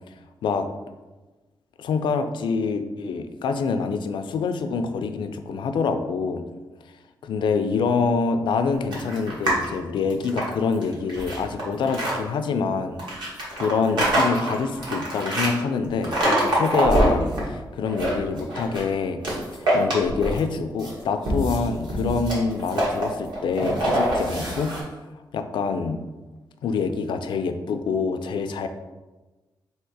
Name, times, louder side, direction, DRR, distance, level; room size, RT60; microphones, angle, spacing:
voice 1, 1.8-6.4 7.2-24.8 25.3-26.0 26.6-28.7, left 5 dB, 90° left, 8 dB, 0.4 m, -26 dB
sound 1, 8.9-9.7 10.1-12.1 13.0-15.5 16.0-17.4 17.8-18.9 19.2-20.5 20.8-24.8, right 1 dB, 70° right, 1.4 m, -25 dB
3.6 x 2.8 x 4.6 m, 1.2 s
wide cardioid pair, 125°, 8 cm